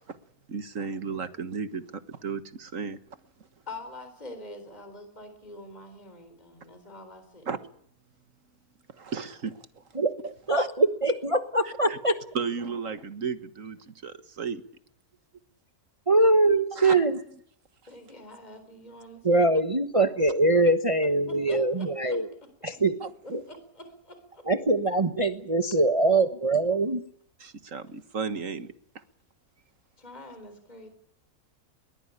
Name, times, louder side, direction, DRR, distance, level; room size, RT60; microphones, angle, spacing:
voice 1, 0.5-3.0 7.5-7.6 8.9-9.8 10.2-10.7 11.6-12.0 12.3-14.6 16.7-17.0 23.0-23.1 27.4-28.7, right 5 dB, 60° right, 1.8 m, -34 dB
voice 2, 3.7-7.5 17.9-19.5 21.3-22.2 23.2-24.4 30.0-30.9, left 1 dB, 25° left, 4.0 m, -45 dB
voice 3, 10.5-12.2 16.1-17.2 19.2-22.3 22.6-23.0 23.3-23.4 24.5-27.0, right 2 dB, 25° right, 1.2 m, -23 dB
22.0 x 19.5 x 9.9 m
omnidirectional pair, 1.6 m